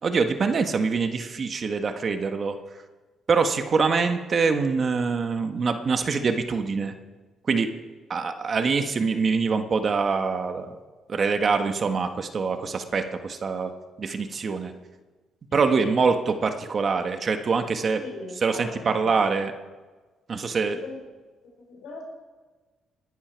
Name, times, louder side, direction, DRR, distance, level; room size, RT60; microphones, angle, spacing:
voice 1, 0.0-2.6 3.3-6.9 7.5-7.7 8.1-10.8 11.1-13.7 14.0-14.7 15.5-18.0 18.4-19.5 20.3-20.8, right 5 dB, 45° right, 7 dB, 1.3 m, -24 dB
voice 2, 15.5-16.0 17.8-19.2 20.7-21.0 21.7-22.0, left 3 dB, 85° left, 0 dB, 4.9 m, -40 dB
19.5 x 11.0 x 4.6 m, 1.3 s
cardioid pair, 90°, 0 cm